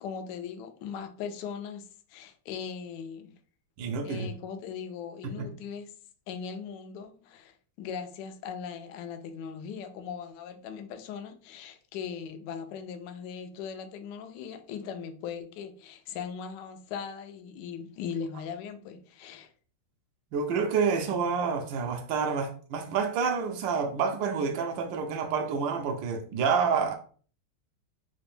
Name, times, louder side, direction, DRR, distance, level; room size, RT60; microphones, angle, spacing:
voice 1, 0.0-3.3 4.0-5.9 6.3-19.5, left 7 dB, 80° left, 1.0 m, -39 dB
voice 2, 3.8-4.3 5.2-5.5 20.3-26.9, right 5 dB, 70° right, 1.2 m, -28 dB
3.9 x 2.5 x 3.3 m
omnidirectional pair, 2.4 m